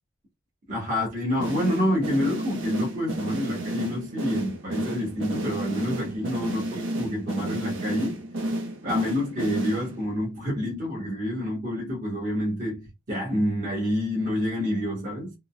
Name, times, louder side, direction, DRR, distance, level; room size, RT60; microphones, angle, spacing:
voice 1, 0.7-8.2 8.8-15.3, left 1 dB, 35° right, 1.5 m, -28 dB
sound 1, 1.4-10.2, right 1 dB, 65° right, 0.9 m, -31 dB
3.7 x 2.3 x 2.3 m
head